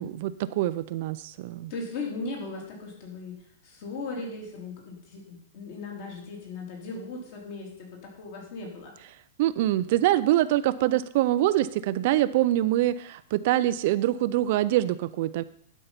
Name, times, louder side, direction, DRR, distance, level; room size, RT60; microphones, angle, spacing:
voice 1, 0.0-1.7 9.4-15.4, right 14 dB, 45° right, 14 dB, 0.4 m, -24 dB
voice 2, 1.7-3.3 3.6-8.9, left 3 dB, 45° left, -1 dB, 3.4 m, -37 dB
11.0 x 5.5 x 5.8 m, 0.69 s
supercardioid pair, 160°, 0 cm